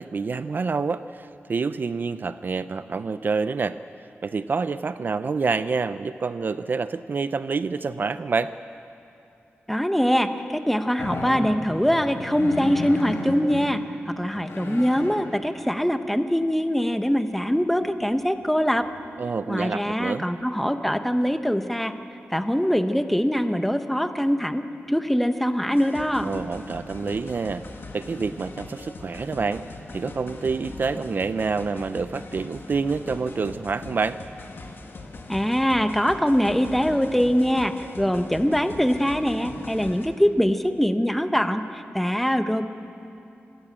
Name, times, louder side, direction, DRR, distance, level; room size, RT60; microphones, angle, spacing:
voice 1, 0.0-3.8 4.2-8.5 19.2-20.2 26.2-27.6 27.9-34.2, right 4 dB, 50° right, 13 dB, 0.4 m, -27 dB
voice 2, 9.7-18.9 19.5-22.0 22.3-24.6 24.9-26.3 35.3-42.7, equal, 5° left, 8 dB, 0.9 m, -23 dB
sound 1, 11.0-13.7 14.2-15.2 18.0-18.1 18.7-19.0, left 2 dB, 75° left, 4.1 m, -33 dB
sound 2, 25.7-40.1, left 3 dB, 60° left, 1.8 m, -40 dB
26.5 x 13.5 x 8.7 m, 2.7 s
wide cardioid pair, 165°, 4 cm